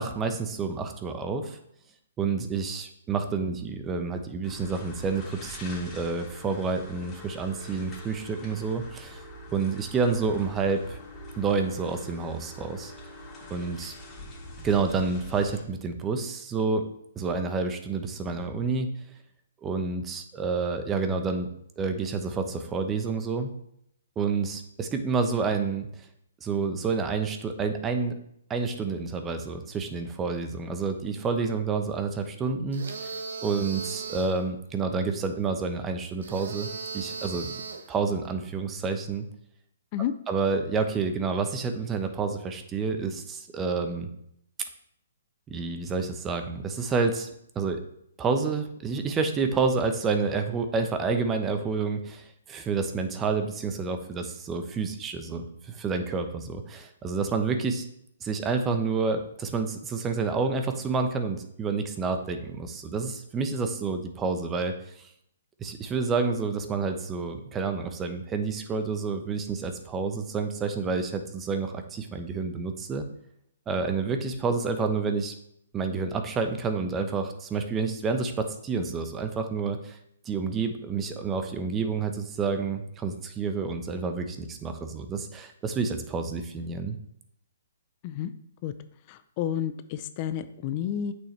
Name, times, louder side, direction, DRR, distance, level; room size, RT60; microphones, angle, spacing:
voice 1, 0.0-1.6 2.2-9.2 9.5-11.0 11.4-12.9 13.5-13.9 14.6-16.8 17.2-18.9 19.6-21.5 21.8-23.5 24.2-25.9 26.4-28.2 28.5-33.2 33.4-37.5 37.9-39.2 40.3-44.1 45.5-47.3 47.5-47.8 48.2-57.8 58.2-65.1 65.6-73.0 73.7-75.3 75.7-80.0 80.3-87.0, right 4 dB, 15° right, 7 dB, 0.9 m, -29 dB
sound 1, 4.4-15.6, left 1 dB, 20° left, 2.9 m, -44 dB
sound 2, 32.7-34.4 36.2-37.9, right 5 dB, 65° right, 1.2 m, -37 dB
voice 2, 89.1-91.1, left 10 dB, 35° left, 12 dB, 0.5 m, -30 dB
8.7 x 6.3 x 3.3 m, 0.74 s
hypercardioid pair, 140°, 0 cm